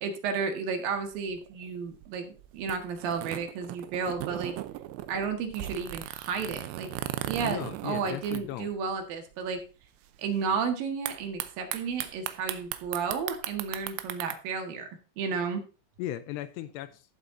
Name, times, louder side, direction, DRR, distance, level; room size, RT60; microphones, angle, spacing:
voice 1, 0.0-4.5 5.1-6.9 7.2-9.6 10.2-14.9 15.2-15.6, right 5 dB, 60° right, 6 dB, 2.8 m, -32 dB
sound 1, 1.0-9.1 9.3-9.4 9.6-10.1 11.1-14.4, right 14 dB, 80° right, 2.8 m, -38 dB
voice 2, 7.4-8.7 16.0-17.0, left 13 dB, 85° left, 13 dB, 2.4 m, -37 dB
14.5 x 7.9 x 2.7 m, 0.33 s
omnidirectional pair, 5.4 m